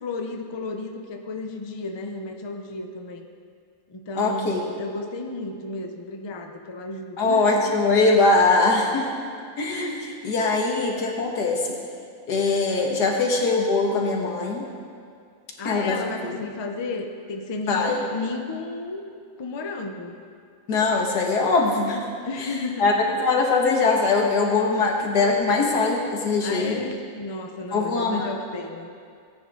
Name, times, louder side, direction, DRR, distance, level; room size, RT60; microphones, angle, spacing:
voice 1, 0.0-3.2 3.9-7.8 15.6-19.0 19.4-20.2 22.2-22.9 26.4-28.9, left 3 dB, 30° left, 3 dB, 0.4 m, -33 dB
voice 2, 4.2-4.7 7.2-9.1 9.6-11.6 12.3-14.7 15.6-16.3 17.7-18.0 20.7-22.1 22.8-22.9 23.2-26.8 27.7-28.3, left 3 dB, 90° left, 0 dB, 2.0 m, -22 dB
17.0 x 8.9 x 3.8 m, 2.3 s
omnidirectional pair, 1.7 m